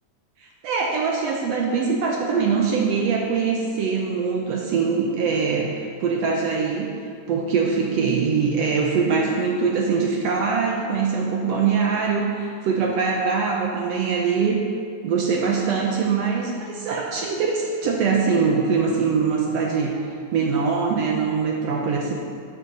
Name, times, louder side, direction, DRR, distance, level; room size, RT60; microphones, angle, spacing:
voice 1, 0.4-6.9 7.3-14.6 15.0-19.9 20.3-22.1, right 5 dB, 75° right, 0 dB, 1.5 m, -23 dB
12.5 x 6.6 x 3.9 m, 2.4 s
omnidirectional pair, 3.6 m